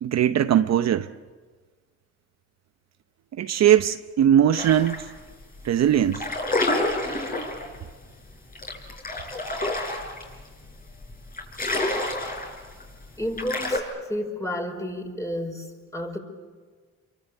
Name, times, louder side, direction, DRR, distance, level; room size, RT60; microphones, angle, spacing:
voice 1, 0.0-1.1 3.4-5.0 5.6-6.2, right 10 dB, 55° right, 0.8 m, -20 dB
sound 1, 4.6-5.1 5.4-5.6 6.0-13.8, left 2 dB, 25° left, 6.1 m, -28 dB
voice 2, 13.2-15.7 15.9-16.2, left 1 dB, 10° left, 5.4 m, -31 dB
28.5 x 23.5 x 8.1 m
cardioid pair, 95°, 31 cm